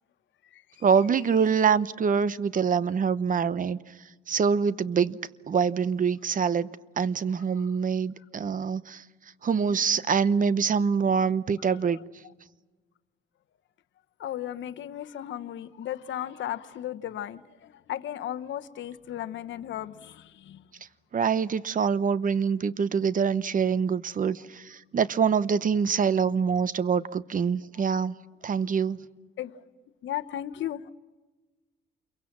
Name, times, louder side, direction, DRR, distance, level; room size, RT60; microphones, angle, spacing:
voice 1, 0.8-4.0 4.3-5.2 5.5-6.7 7.0-9.0 9.4-12.0 21.1-28.1 28.4-29.0, right 6 dB, 45° right, 0.9 m, -25 dB
voice 2, 14.2-20.6 29.4-29.5 30.0-30.9, left 11 dB, 70° left, 1.1 m, -35 dB
28.5 x 23.0 x 7.4 m
cardioid pair, 90°, 20 cm